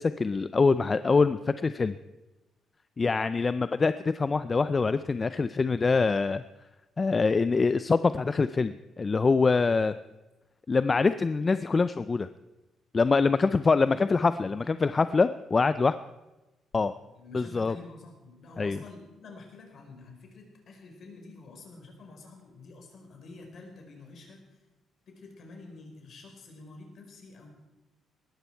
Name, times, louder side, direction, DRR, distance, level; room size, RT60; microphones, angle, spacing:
voice 1, 0.0-2.0 3.0-6.4 7.0-9.9 10.7-12.3 12.9-15.9 16.7-16.9 17.3-17.7 18.6-18.8, left 4 dB, 30° left, 13 dB, 0.4 m, -24 dB
voice 2, 14.4-14.8 15.7-15.9 16.8-24.6 25.1-27.5, left 3 dB, 60° left, 3 dB, 4.5 m, -48 dB
18.5 x 14.0 x 4.5 m, 1.1 s
cardioid pair, 90°, 0 cm